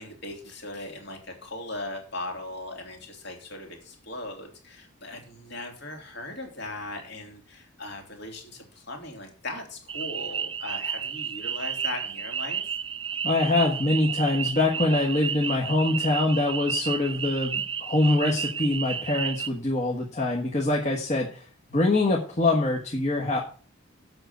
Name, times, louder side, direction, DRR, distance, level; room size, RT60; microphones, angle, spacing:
voice 1, 0.0-12.6, left 2 dB, 50° left, 2 dB, 2.9 m, -38 dB
sound 1, 9.9-19.5, right 7 dB, 25° right, 0.4 m, -32 dB
voice 2, 13.2-21.4 21.7-23.4, left 2 dB, 35° left, -2 dB, 1.4 m, -24 dB
7.9 x 6.3 x 8.0 m, 0.41 s
head